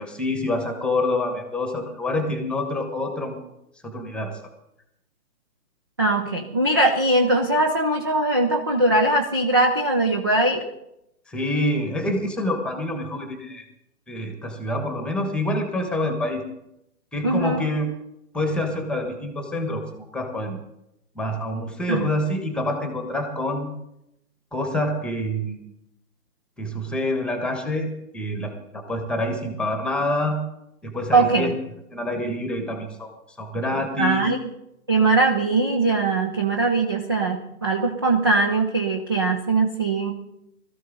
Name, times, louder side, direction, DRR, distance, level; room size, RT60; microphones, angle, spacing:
voice 1, 0.0-3.4 3.8-4.4 11.3-13.6 14.1-16.5 17.1-17.9 18.3-20.6 21.1-23.7 24.5-25.6 26.6-30.4 30.8-31.5 31.9-33.1 33.4-34.3, left 1 dB, ahead, 5 dB, 1.3 m, -27 dB
voice 2, 6.0-10.6 17.2-17.6 21.9-22.1 31.1-31.5 34.0-34.4 34.9-40.1, right 2 dB, 15° right, 1 dB, 0.5 m, -21 dB
20.5 x 14.0 x 4.0 m, 0.82 s
hypercardioid pair, 145°, 47 cm